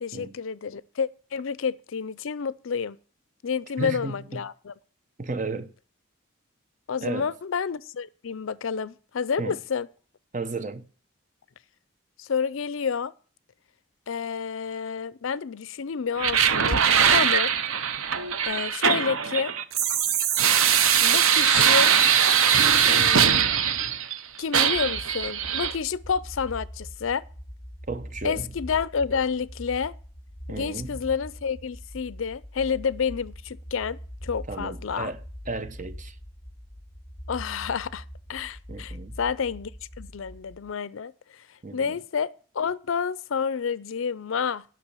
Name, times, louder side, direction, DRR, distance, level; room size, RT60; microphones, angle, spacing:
voice 1, 0.0-3.0 3.4-4.7 6.9-9.9 12.2-13.1 14.1-16.8 17.1-17.5 18.4-19.5 21.0-21.9 22.9-23.5 24.4-27.2 28.2-29.9 30.5-35.1 37.3-38.0 38.3-39.7 40.0-41.1 41.7-44.6, left 6 dB, 65° left, 0.5 m, -29 dB
voice 2, 3.8-4.4 5.2-5.7 7.0-7.3 9.4-9.6 10.3-10.9 27.9-28.5 30.5-31.0 34.5-36.1 38.7-39.2 41.6-42.0, right 3 dB, 35° right, 0.8 m, -34 dB
sound 1, 16.2-24.2 24.5-25.7, right 8 dB, 75° right, 0.8 m, -21 dB
sound 2, 24.7-40.7, equal, 25° left, 2.8 m, -42 dB
10.0 x 6.1 x 8.2 m
head